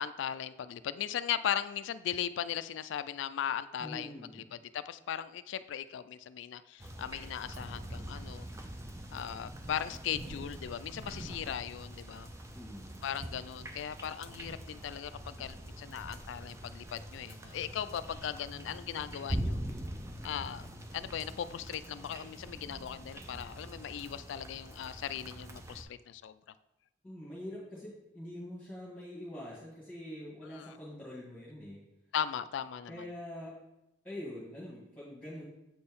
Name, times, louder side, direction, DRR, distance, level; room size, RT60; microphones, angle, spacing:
voice 1, 0.0-8.5 9.1-12.3 13.0-19.6 20.2-20.7 20.9-26.3 30.5-30.8 32.1-33.0, left 9 dB, 80° left, 14 dB, 0.3 m, -38 dB
voice 2, 3.8-4.5 12.5-12.9 27.0-31.8 32.9-33.5 34.0-35.4, left 1 dB, 10° left, -9 dB, 1.6 m, -44 dB
sound 1, 6.8-25.8, right 1 dB, 15° right, 0.4 m, -43 dB
7.6 x 4.3 x 3.6 m, 0.90 s
head